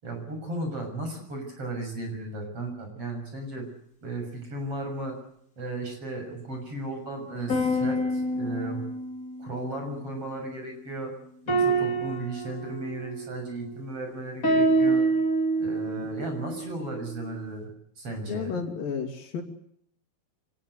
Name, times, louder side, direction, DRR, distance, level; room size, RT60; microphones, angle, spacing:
voice 1, 0.0-3.7 4.0-5.2 5.6-8.8 9.4-11.1 11.5-15.0 15.6-17.7 18.0-18.6, right 2 dB, 40° right, 4 dB, 7.5 m, -35 dB
sound 1, 7.5-10.5 11.5-13.8 14.4-17.4, right 2 dB, 20° left, 3.8 m, -27 dB
voice 2, 18.3-19.4, left 6 dB, 65° left, 5 dB, 4.4 m, -33 dB
26.0 x 18.5 x 8.1 m, 0.70 s
omnidirectional pair, 4.3 m